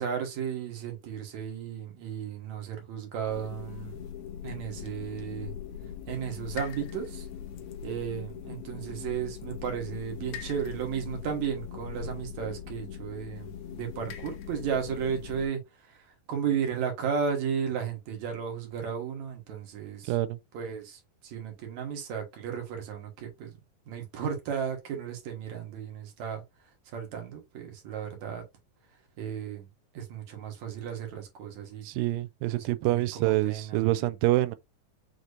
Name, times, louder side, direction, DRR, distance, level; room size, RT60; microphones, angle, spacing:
voice 1, 0.0-4.0 4.4-5.5 6.1-7.3 7.8-15.6 15.9-20.1 20.5-23.6 23.9-26.4 26.9-28.4 29.2-29.7 29.9-31.9 32.4-34.0, right 7 dB, 60° right, 2.4 m, -34 dB
sound 1, 3.3-15.5, left 8 dB, 75° left, 1.8 m, -41 dB
voice 2, 20.1-20.4 31.8-34.6, right 17 dB, 90° right, 2.3 m, -26 dB
6.5 x 2.9 x 2.5 m
omnidirectional pair, 4.0 m